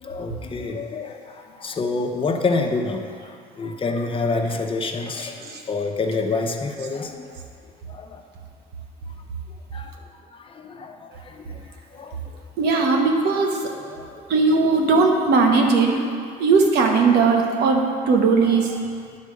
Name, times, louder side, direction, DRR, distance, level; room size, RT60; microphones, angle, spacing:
voice 1, 0.0-3.1 3.6-7.2 7.9-8.2 9.7-9.9 10.4-11.6 11.9-12.2 13.9-14.2 17.0-17.1 18.7-18.8, left 3 dB, 30° left, 4 dB, 0.8 m, -27 dB
voice 2, 12.6-13.7 14.3-16.0 16.4-18.7, right 4 dB, 75° right, 2 dB, 1.2 m, -18 dB
9.5 x 4.6 x 6.5 m, 2.2 s
cardioid pair, 110°, 17 cm